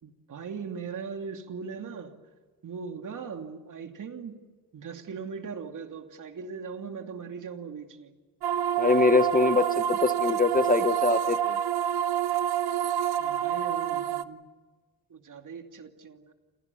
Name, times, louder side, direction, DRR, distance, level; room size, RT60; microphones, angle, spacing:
voice 1, 0.0-2.1 2.6-4.4 4.7-8.1 13.2-14.4 15.1-16.3, right 5 dB, 55° right, 2.7 m, -39 dB
sound 1, 8.4-14.2, right 10 dB, 80° right, 1.2 m, -27 dB
voice 2, 8.8-11.6, left 3 dB, 20° left, 1.1 m, -23 dB
29.0 x 28.0 x 7.0 m
cardioid pair, 130°, 38 cm